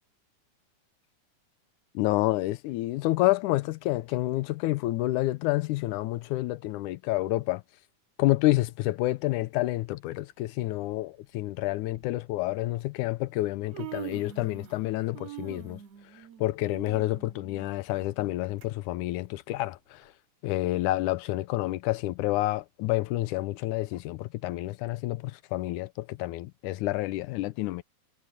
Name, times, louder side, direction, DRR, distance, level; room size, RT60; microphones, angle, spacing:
voice 1, 2.0-7.6 8.2-15.8 16.4-20.0 20.4-27.8, left 17 dB, 85° left, 2.1 m, -29 dB
Human voice, 9.9-10.1 11.2-11.3 11.9-12.1 13.1-13.2 13.5-14.9 15.1-18.7 19.1-19.2 20.0-20.1, right 14 dB, 60° right, 2.6 m, -44 dB
omnidirectional pair, 3.6 m